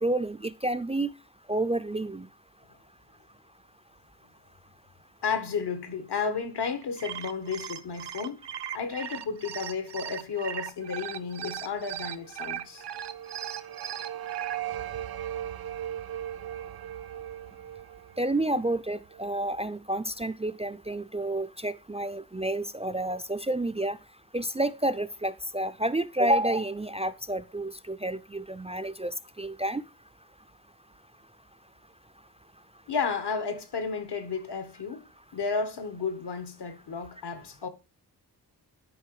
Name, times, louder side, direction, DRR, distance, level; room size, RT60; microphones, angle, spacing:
voice 1, 0.0-1.1 1.5-2.3 18.2-24.0 24.3-29.8, right 1 dB, 15° right, 0.4 m, -29 dB
voice 2, 5.2-8.4 8.7-12.8 32.9-35.0 35.3-37.7, left 5 dB, 75° left, 1.6 m, -32 dB
sound 1, 6.8-14.6, right 10 dB, 90° right, 0.9 m, -38 dB
sound 2, 12.5-19.5, right 11 dB, 65° right, 0.6 m, -38 dB
11.5 x 5.2 x 4.8 m
wide cardioid pair, 145°, 40 cm